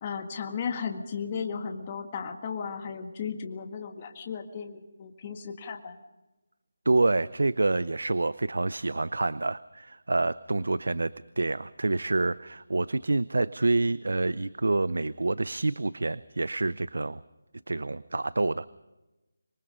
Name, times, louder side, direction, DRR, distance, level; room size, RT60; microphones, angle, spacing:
voice 1, 0.0-6.0, left 6 dB, 25° left, 4 dB, 1.9 m, -35 dB
voice 2, 6.9-17.2 17.7-18.7, right 2 dB, 80° right, 18 dB, 0.6 m, -27 dB
26.0 x 22.5 x 5.4 m, 1.0 s
figure-of-eight pair, 165°, 0 cm